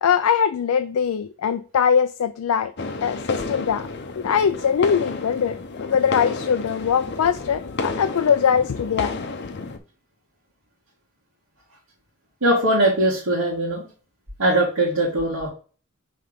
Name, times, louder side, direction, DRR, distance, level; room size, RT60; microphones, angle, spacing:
voice 1, 0.0-2.7 3.0-3.9 4.2-9.1, left 7 dB, 85° left, 0.4 m, -21 dB
sound 1, 2.8-9.8, left 3 dB, 50° left, 0.7 m, -31 dB
voice 2, 12.4-13.8 14.4-15.5, right 1 dB, 80° right, 1.8 m, -20 dB
5.7 x 3.3 x 5.1 m
head